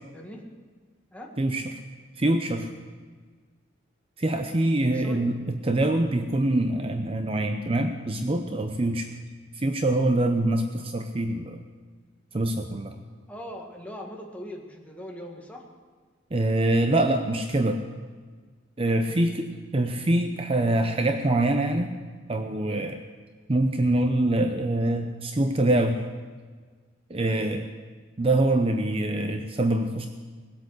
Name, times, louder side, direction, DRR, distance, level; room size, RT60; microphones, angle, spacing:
voice 1, 2.2-2.7 4.2-5.4 5.6-9.1 9.5-11.6 12.3-12.9 16.3-17.8 18.8-21.9 22.3-23.0 23.5-26.1 27.1-27.7 28.2-30.1, right 1 dB, 30° right, 6 dB, 0.7 m, -24 dB
voice 2, 4.9-5.3 13.3-15.7 19.0-19.4 27.3-27.5, equal, 10° left, 0 dB, 1.7 m, -41 dB
19.0 x 8.3 x 6.5 m, 1.5 s
head